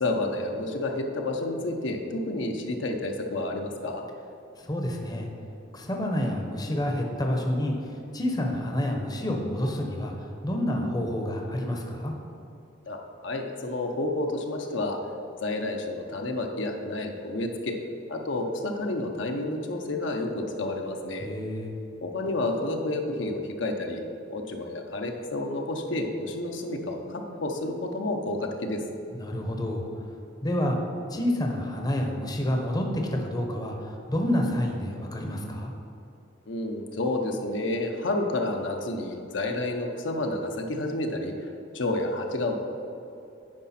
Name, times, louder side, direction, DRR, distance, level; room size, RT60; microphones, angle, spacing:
voice 1, 0.0-4.0 12.9-15.0 15.4-17.8 18.1-21.3 22.0-24.0 24.3-28.8 36.5-41.3 41.7-42.5, left 2 dB, 70° left, 3 dB, 0.8 m, -30 dB
voice 2, 4.6-5.3 5.7-12.1 21.2-21.7 29.1-29.8 30.4-30.8 31.1-35.7, left 1 dB, 20° left, 2 dB, 0.8 m, -28 dB
9.7 x 5.1 x 4.2 m, 2.8 s
head